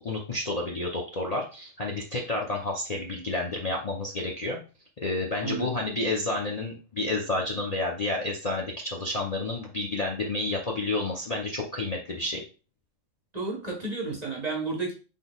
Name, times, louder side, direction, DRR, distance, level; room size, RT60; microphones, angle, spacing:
voice 1, 0.0-4.6 5.0-12.4, left 2 dB, 40° left, -1 dB, 0.7 m, -30 dB
voice 2, 13.3-14.9, right 3 dB, 35° right, -1 dB, 1.2 m, -31 dB
6.1 x 3.7 x 2.3 m, 0.34 s
omnidirectional pair, 1.3 m